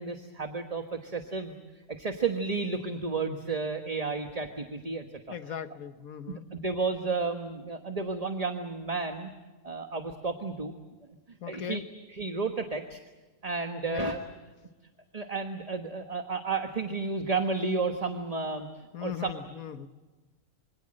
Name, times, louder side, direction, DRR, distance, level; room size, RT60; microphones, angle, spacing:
voice 1, 0.0-1.5 1.9-5.0 6.3-9.3 9.6-10.7 11.5-11.8 12.1-13.0 13.4-14.2 15.1-18.7 19.0-19.4, right 4 dB, 30° right, 6 dB, 1.4 m, -32 dB
voice 2, 5.3-6.5 11.4-11.8 13.9-14.1 18.9-19.9, left 9 dB, 85° left, 11 dB, 1.6 m, -38 dB
26.5 x 24.5 x 7.6 m, 1.2 s
omnidirectional pair, 1.4 m